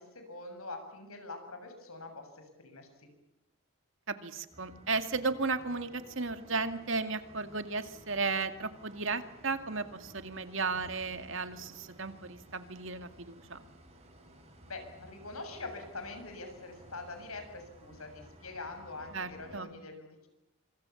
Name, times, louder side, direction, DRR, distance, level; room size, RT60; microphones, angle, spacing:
voice 1, 0.0-3.1 14.7-20.3, left 3 dB, 85° left, 6 dB, 7.3 m, -44 dB
voice 2, 4.1-13.6 19.1-19.7, right 4 dB, 60° right, 9 dB, 2.2 m, -34 dB
sound 1, 4.5-19.6, right 1 dB, 30° right, 6.6 m, -55 dB
26.5 x 25.0 x 7.2 m, 0.93 s
head